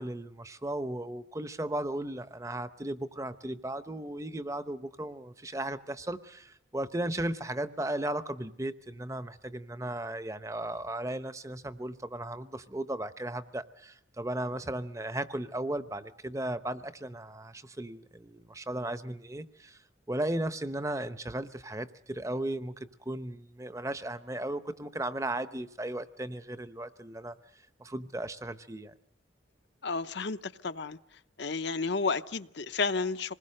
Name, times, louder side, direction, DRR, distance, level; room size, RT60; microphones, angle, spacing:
voice 1, 0.0-19.8 20.1-27.4 27.8-28.9, right 1 dB, 15° right, 0.8 m, -36 dB
voice 2, 29.8-31.0 31.4-33.3, left 4 dB, 65° left, 0.8 m, -31 dB
27.0 x 20.5 x 6.6 m
head